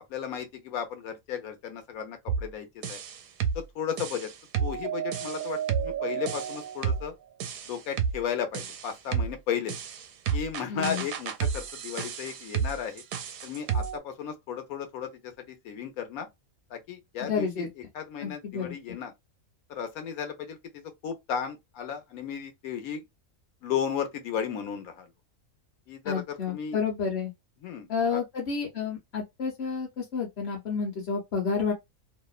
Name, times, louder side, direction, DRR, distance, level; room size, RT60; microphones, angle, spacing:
voice 1, 0.1-3.0 3.5-4.3 4.6-7.1 7.7-9.7 10.3-13.0 13.4-16.3 16.7-17.7 17.9-19.1 19.7-20.6 21.0-23.0 23.6-25.1 25.9-26.8 27.6-28.2, left 8 dB, 90° left, 1.1 m, -34 dB
sound 1, 2.3-2.5 2.8-3.6 4.0-7.1 7.4-8.2 8.5-9.3 9.7-14.0, right 7 dB, 80° right, 1.0 m, -31 dB
voice 2, 10.7-11.0 17.3-17.7 18.2-18.7 26.0-27.3 27.9-31.7, left 5 dB, 55° left, 0.9 m, -30 dB
2.7 x 2.1 x 2.3 m
omnidirectional pair, 1.5 m